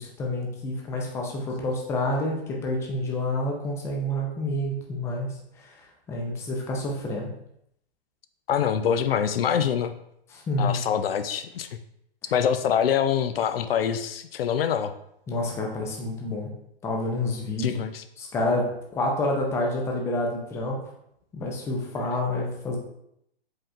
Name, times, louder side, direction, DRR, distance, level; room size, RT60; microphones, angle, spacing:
voice 1, 0.0-5.3 5.6-7.3 10.3-10.8 15.3-16.5 16.8-17.8 18.2-20.8 21.3-22.8, left 1 dB, 10° left, -1 dB, 0.5 m, -28 dB
voice 2, 8.5-9.9 10.6-11.7 12.3-14.9 17.6-18.0, left 8 dB, 70° left, 9 dB, 0.5 m, -25 dB
5.1 x 3.6 x 2.5 m, 0.76 s
hypercardioid pair, 135°, 31 cm